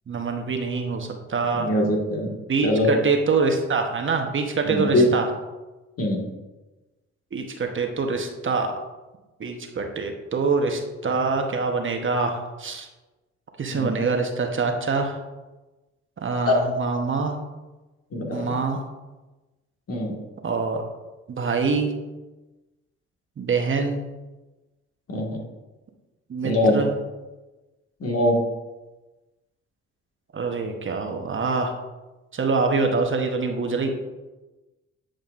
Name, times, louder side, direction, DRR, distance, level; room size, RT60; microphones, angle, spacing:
voice 1, 0.1-1.7 2.5-5.3 7.3-8.7 9.4-12.9 13.6-15.2 16.2-17.4 18.3-18.8 20.4-20.8 21.3-21.9 23.4-24.0 26.3-26.9 30.3-31.7 32.3-33.9, right 4 dB, 40° right, 4 dB, 1.0 m, -25 dB
voice 2, 1.5-2.3 2.6-2.9 4.6-5.1 6.0-6.2 13.7-13.9 16.4-16.7 18.1-18.5 19.9-20.2 25.1-25.4 26.4-26.8 28.0-28.4, left 1 dB, 50° left, 0 dB, 1.8 m, -22 dB
9.3 x 5.1 x 2.5 m, 1.1 s
supercardioid pair, 65°, 30 cm